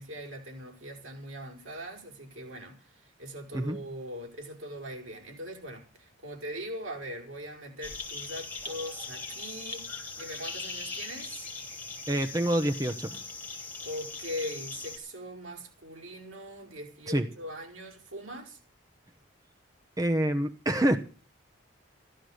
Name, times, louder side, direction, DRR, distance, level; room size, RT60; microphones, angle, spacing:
voice 1, 0.0-11.5 13.8-18.6, equal, 90° right, 5.2 m, -41 dB
sound 1, 7.8-15.0, left 4 dB, 10° left, 3.1 m, -40 dB
voice 2, 12.1-13.1 17.1-17.3 20.0-21.0, right 1 dB, 20° right, 0.9 m, -26 dB
15.0 x 12.0 x 6.5 m
head